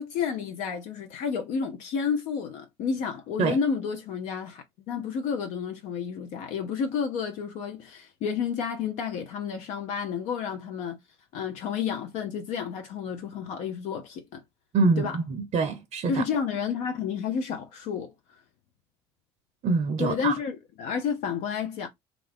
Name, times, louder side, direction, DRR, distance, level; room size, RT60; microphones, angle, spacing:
voice 1, 0.0-11.0 11.3-14.4 15.0-15.2 16.1-18.1 20.0-21.9, left 6 dB, 60° left, 0.7 m, -31 dB
voice 2, 14.7-16.2 19.6-20.3, right 4 dB, 50° right, 0.5 m, -25 dB
2.4 x 2.4 x 3.4 m
hypercardioid pair, 60°, 14 cm